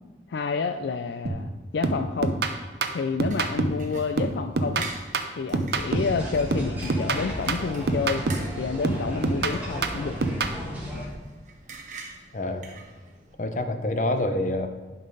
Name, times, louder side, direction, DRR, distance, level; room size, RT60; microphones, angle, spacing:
voice 1, 0.3-2.4 2.9-4.9 5.4-8.2 8.5-10.2, left 5 dB, 70° left, 8 dB, 0.4 m, -29 dB
sound 1, 1.3-1.5 1.8-3.9 4.2-6.2 6.5-8.5 8.8-10.6, right 3 dB, 60° right, 0.7 m, -27 dB
sound 2, 3.3-13.3, right 4 dB, 45° right, 1.2 m, -46 dB
sound 3, 5.7-11.1, equal, 10° right, 2.0 m, -35 dB
voice 2, 12.3-12.8 13.4-14.7, left 1 dB, 45° left, 7 dB, 0.7 m, -27 dB
11.0 x 5.4 x 4.0 m, 1.3 s
head